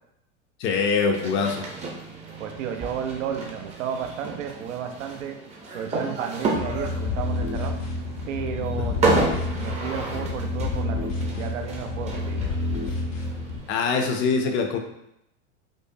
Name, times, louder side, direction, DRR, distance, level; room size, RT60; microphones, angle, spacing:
voice 1, 0.6-1.7 13.7-14.8, left 5 dB, 35° left, 4 dB, 0.4 m, -23 dB
sound 1, 1.1-14.0, right 3 dB, 20° right, 0.5 m, -32 dB
voice 2, 2.4-5.4 5.7-7.8 8.3-12.4, right 8 dB, 90° right, 6 dB, 0.6 m, -33 dB
sound 2, 6.5-13.6, left 2 dB, 80° left, 0.9 m, -29 dB
5.2 x 2.1 x 2.6 m, 0.80 s
supercardioid pair, 130°, 37 cm